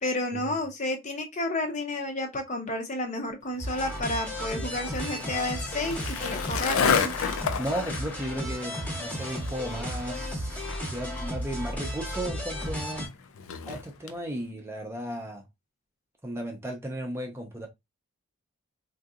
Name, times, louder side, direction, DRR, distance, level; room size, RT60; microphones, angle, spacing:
voice 1, 0.0-7.1, left 2 dB, 35° left, 0.6 m, -31 dB
Skateboard, 3.6-14.2, left 6 dB, 80° left, 0.5 m, -33 dB
sound 1, 3.6-13.1, equal, 5° left, 0.8 m, -34 dB
voice 2, 7.6-10.6 10.9-13.1 13.7-15.4 16.2-17.7, right 1 dB, 10° right, 0.5 m, -35 dB
3.7 x 2.6 x 2.4 m
head